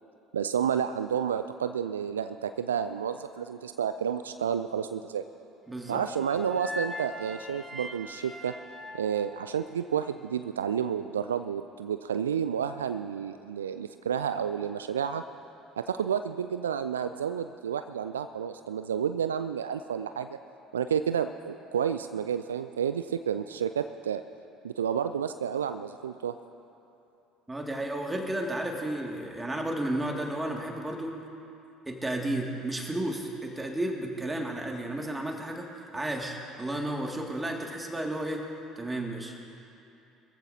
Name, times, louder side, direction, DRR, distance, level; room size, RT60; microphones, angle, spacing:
voice 1, 0.3-5.2 5.9-8.5 8.9-15.2 15.8-20.4 20.7-24.2 24.6-26.4, right 8 dB, 80° right, 10 dB, 0.3 m, -30 dB
voice 2, 5.7-6.1 27.5-31.2 31.9-35.7 35.9-38.4 38.8-39.4, right 1 dB, 15° right, 0 dB, 2.2 m, -32 dB
sound 1, 5.8-10.0, left 1 dB, ahead, 2.1 m, -42 dB
23.0 x 14.5 x 2.8 m, 2.8 s
figure-of-eight pair, 60°, 0 cm